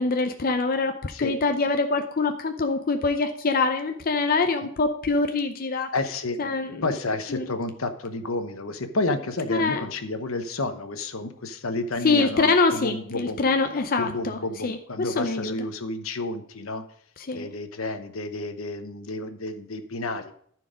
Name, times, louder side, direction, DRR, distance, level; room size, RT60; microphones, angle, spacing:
voice 1, 0.0-5.9 6.4-6.8 7.3-7.4 9.6-9.8 12.0-14.8 15.2-15.5 17.3-17.5, left 3 dB, 45° left, 6 dB, 0.6 m, -24 dB
voice 2, 5.9-6.4 6.8-13.4 14.0-16.8 17.3-20.3, left 2 dB, 75° left, 8 dB, 1.0 m, -30 dB
13.5 x 4.7 x 5.1 m, 0.63 s
head